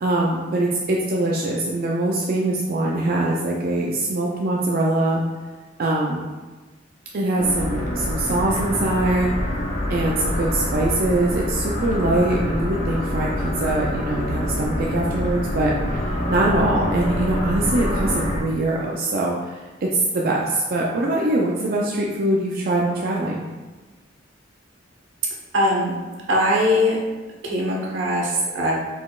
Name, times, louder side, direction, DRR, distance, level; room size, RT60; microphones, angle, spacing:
voice 1, 0.0-5.2 5.8-6.3 7.1-9.3 9.9-23.4, right 2 dB, 50° right, -2 dB, 0.4 m, -23 dB
sound 1, 7.4-18.4, left 1 dB, 40° left, 0.7 m, -26 dB
voice 2, 25.5-25.9 26.3-27.0 27.4-28.7, left 1 dB, 80° right, -3 dB, 1.1 m, -21 dB
5.0 x 4.1 x 2.4 m, 1.3 s
head